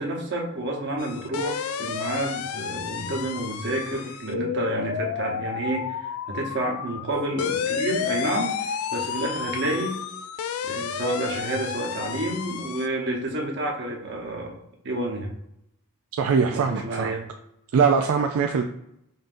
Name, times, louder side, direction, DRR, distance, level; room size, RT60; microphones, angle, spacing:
voice 1, 0.0-10.0 10.6-14.6 14.8-15.3 16.5-17.3, right 1 dB, 55° right, -1 dB, 0.9 m, -29 dB
sound 1, 1.0-12.9, left 7 dB, 70° left, 0.3 m, -31 dB
voice 2, 16.1-17.1 17.7-18.6, right 5 dB, 75° right, 4 dB, 0.3 m, -22 dB
5.4 x 2.6 x 2.5 m, 0.79 s
head